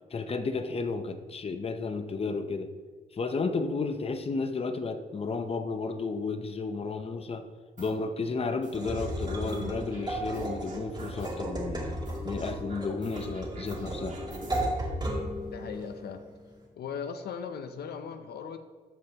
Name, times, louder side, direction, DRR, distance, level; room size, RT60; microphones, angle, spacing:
voice 1, 0.1-2.7 3.1-7.5 7.8-11.9 12.2-14.2, left 4 dB, 35° left, 7 dB, 0.7 m, -32 dB
sound 1, 7.8-8.1 8.6-10.0 10.3-11.5 12.1-14.6, right 3 dB, 50° right, 1.8 m, -45 dB
sound 2, 8.7-16.6, right 1 dB, 25° right, 2.5 m, -35 dB
voice 2, 15.5-16.2 16.8-18.6, left 6 dB, 80° left, 8 dB, 0.6 m, -38 dB
14.0 x 5.4 x 2.9 m, 1.4 s
cardioid pair, 85°, 16 cm